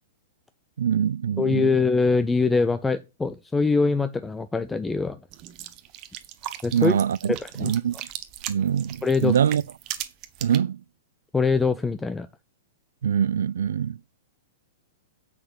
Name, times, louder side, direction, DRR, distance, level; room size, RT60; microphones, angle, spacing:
voice 1, 0.8-1.8 6.7-8.0 8.5-9.6 10.4-10.8 13.0-14.0, right 8 dB, 70° right, 0.3 m, -24 dB
voice 2, 1.4-5.2 6.6-6.9 7.3-7.7 9.0-9.4 11.3-12.3, left 4 dB, 10° left, 0.5 m, -23 dB
sound 1, 5.3-10.6, right 13 dB, 40° right, 1.0 m, -38 dB
7.9 x 6.1 x 4.8 m
figure-of-eight pair, 105°, 0 cm